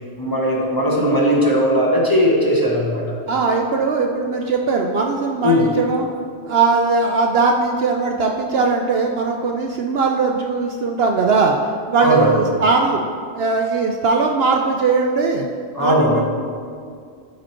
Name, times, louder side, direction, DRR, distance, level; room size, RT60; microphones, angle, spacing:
voice 1, 0.1-3.0 5.4-5.7 12.0-12.3 15.7-16.2, equal, 15° left, -4 dB, 1.4 m, -18 dB
voice 2, 3.3-6.1 6.4-13.0 13.3-15.5 15.8-16.2, right 4 dB, 60° right, 2 dB, 0.8 m, -19 dB
12.5 x 5.2 x 4.5 m, 2.2 s
omnidirectional pair, 1.3 m